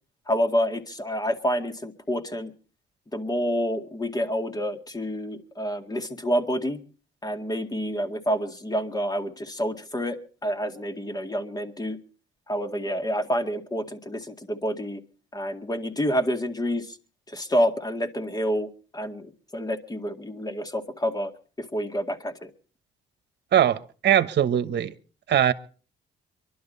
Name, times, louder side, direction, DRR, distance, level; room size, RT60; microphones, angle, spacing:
voice 1, 0.3-2.5 3.1-6.8 7.2-12.0 12.5-15.0 15.3-17.0 17.3-21.3 21.6-22.5, equal, 20° left, 2.1 m, -28 dB
voice 2, 23.5-24.9 25.3-25.5, right 10 dB, 60° right, 1.2 m, -21 dB
24.0 x 12.0 x 4.1 m
cardioid pair, 90°, 20 cm